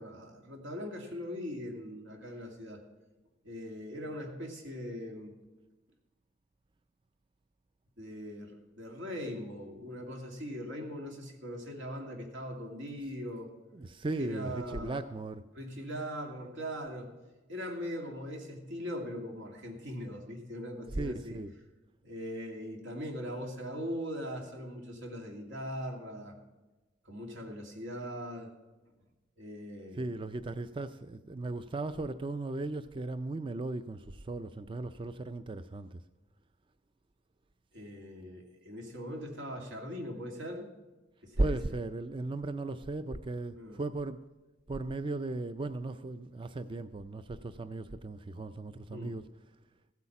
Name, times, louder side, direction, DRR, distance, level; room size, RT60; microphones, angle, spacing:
voice 1, 0.0-2.8 3.4-5.3 8.0-13.5 14.2-15.0 15.5-17.1 17.5-21.4 22.0-26.4 27.0-28.5 29.4-30.1 37.7-40.7 41.2-41.8 43.5-43.8 48.9-49.1, equal, 85° right, 2.5 m, -40 dB
voice 2, 13.7-15.4 20.9-21.5 30.0-36.0 41.4-44.2 44.7-49.2, right 2 dB, 25° right, 0.4 m, -36 dB
15.5 x 8.3 x 5.9 m
head